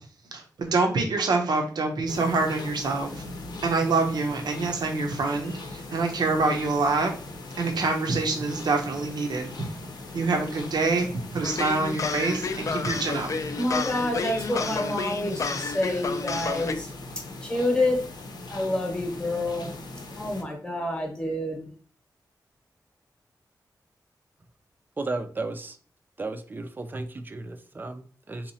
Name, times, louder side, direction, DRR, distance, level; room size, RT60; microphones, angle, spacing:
voice 1, 0.3-3.2 3.6-7.1 7.6-9.5 10.1-13.3, right 3 dB, 75° right, 2 dB, 0.6 m, -26 dB
sound 1, 2.1-20.4, left 2 dB, 80° left, 0.7 m, -40 dB
sound 2, 11.4-16.7, left 4 dB, 50° left, 0.3 m, -31 dB
voice 2, 13.6-16.9 17.4-18.0 18.5-19.7 20.1-21.7, left 1 dB, 15° left, 2 dB, 0.8 m, -28 dB
voice 3, 25.0-25.8 26.2-28.5, right 3 dB, 25° right, 9 dB, 0.3 m, -34 dB
3.8 x 2.9 x 2.7 m, 0.43 s
wide cardioid pair, 170°, 7 cm